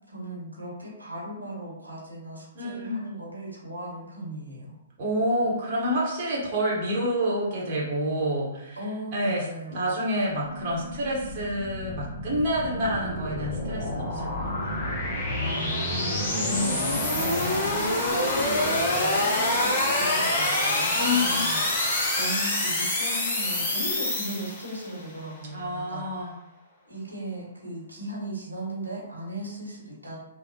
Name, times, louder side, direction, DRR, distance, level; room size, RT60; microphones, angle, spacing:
voice 1, 0.1-4.7 8.8-9.9 15.4-26.0 26.8-30.2, right 1 dB, 90° right, -4 dB, 1.1 m, -37 dB
voice 2, 2.5-3.1 5.0-8.8 9.1-14.9 16.5-16.9 21.0-21.4 25.5-26.3, equal, 40° right, -5 dB, 0.9 m, -28 dB
sound 1, 10.4-24.9, left 1 dB, 30° left, 0.9 m, -27 dB
3.3 x 2.1 x 2.7 m, 0.87 s
figure-of-eight pair, 120°, 0 cm